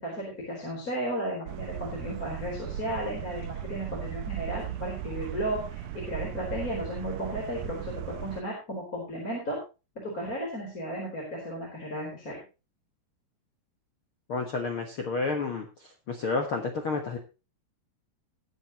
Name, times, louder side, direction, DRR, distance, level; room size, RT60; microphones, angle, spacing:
voice 1, 0.0-9.6 9.9-12.4, equal, 20° left, -3 dB, 4.5 m, -34 dB
sound 1, 1.5-8.4, right 11 dB, 85° right, 1.8 m, -37 dB
voice 2, 14.3-15.7 16.1-17.2, left 4 dB, 65° left, 3 dB, 1.3 m, -30 dB
21.0 x 7.7 x 3.0 m, 0.30 s
omnidirectional pair, 4.6 m